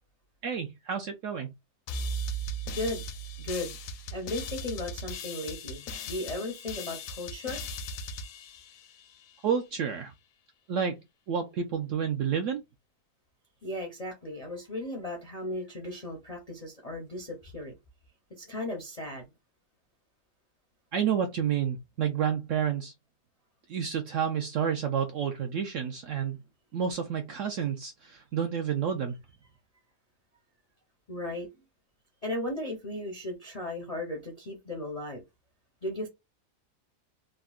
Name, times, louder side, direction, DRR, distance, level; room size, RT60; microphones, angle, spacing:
voice 1, 0.4-1.5 9.4-10.1 10.7-11.0 11.3-12.6 20.9-22.9 23.7-26.4 26.7-29.2, right 7 dB, 70° right, 0.7 m, -30 dB
sound 1, 1.9-9.4, equal, 70° left, 0.8 m, -38 dB
voice 2, 2.7-3.0 3.4-3.8 4.1-7.6 13.6-17.7 18.4-19.3 31.1-31.5 32.2-35.2 35.8-36.1, left 1 dB, 50° left, 0.4 m, -36 dB
3.6 x 2.1 x 2.3 m
omnidirectional pair, 1.7 m